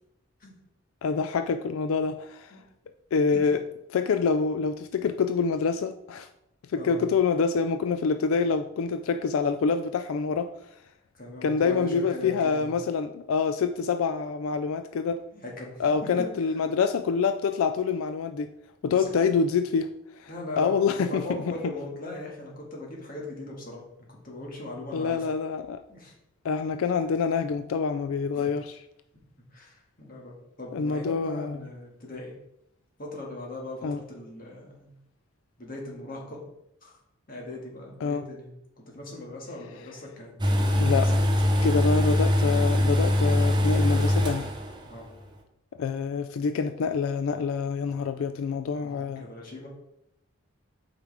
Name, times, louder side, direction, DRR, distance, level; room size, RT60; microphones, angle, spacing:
voice 1, 1.0-2.6 3.1-3.6 3.9-6.3 6.7-10.5 11.4-15.2 15.8-18.5 18.8-20.3 20.6-21.2 24.9-25.8 26.4-28.8 30.7-31.6 33.8-34.0 38.0-38.3 40.8-41.1 41.6-44.5 45.8-49.3, left 5 dB, 80° left, 0.3 m, -26 dB
voice 2, 6.7-7.1 11.1-12.7 15.3-16.1 18.9-19.1 20.3-25.3 25.9-26.1 28.3-28.5 29.5-32.3 33.0-34.9 35.6-36.4 36.8-37.0 37.3-41.2 44.8-45.1 48.7-49.7, left 2 dB, 40° left, 1.8 m, -40 dB
sound 1, 40.4-44.9 45.1-45.2, left 1 dB, 20° right, 0.8 m, -22 dB
8.1 x 5.0 x 3.4 m
head